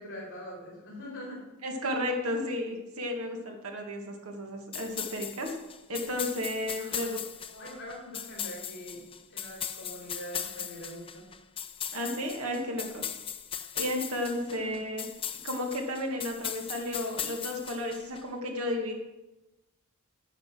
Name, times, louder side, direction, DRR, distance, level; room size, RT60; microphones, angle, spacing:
voice 1, 0.0-1.4 6.8-7.1 7.6-9.0 9.3-11.2 14.4-14.8, equal, 55° left, -4 dB, 3.5 m, -43 dB
voice 2, 1.6-5.6 5.9-7.2 7.5-7.7 11.9-13.0 13.7-15.0 15.4-18.9, left 1 dB, 80° right, 2 dB, 1.9 m, -33 dB
sound 1, 4.7-18.2, left 9 dB, 25° left, 0.5 m, -38 dB
9.0 x 7.8 x 6.1 m, 1.1 s
head